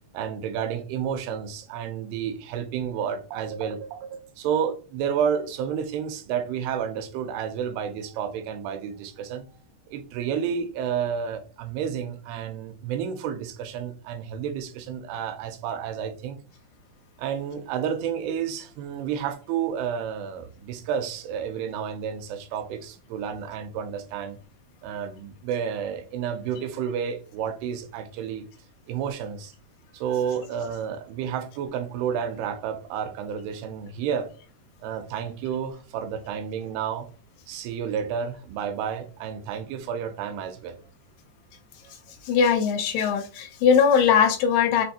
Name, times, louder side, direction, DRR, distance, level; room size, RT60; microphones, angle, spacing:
voice 1, 0.1-9.6 9.9-16.4 17.2-24.4 24.8-28.5 28.9-29.5 29.9-34.3 34.8-37.1 37.5-40.8, right 8 dB, 85° right, 2.6 m, -30 dB
voice 2, 42.2-44.9, left 7 dB, 85° left, 2.7 m, -20 dB
6.4 x 2.5 x 2.7 m
omnidirectional pair, 4.6 m